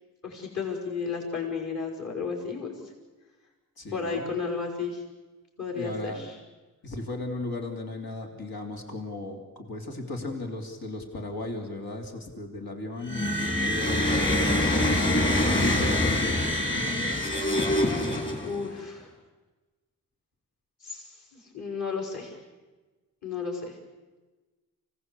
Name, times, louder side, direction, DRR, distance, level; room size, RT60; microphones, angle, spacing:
voice 1, 0.2-2.7 3.9-5.0 5.6-6.3 18.4-19.1 20.8-22.4 23.2-23.8, left 5 dB, 50° left, -1 dB, 5.4 m, -33 dB
voice 2, 3.8-4.3 5.7-6.3 6.8-15.3 15.6-17.3, left 2 dB, 75° left, 2 dB, 3.2 m, -36 dB
sound 1, 13.0-18.7, left 1 dB, 30° left, 4.5 m, -25 dB
25.5 x 17.5 x 8.4 m, 1.2 s
cardioid pair, 75°, 36 cm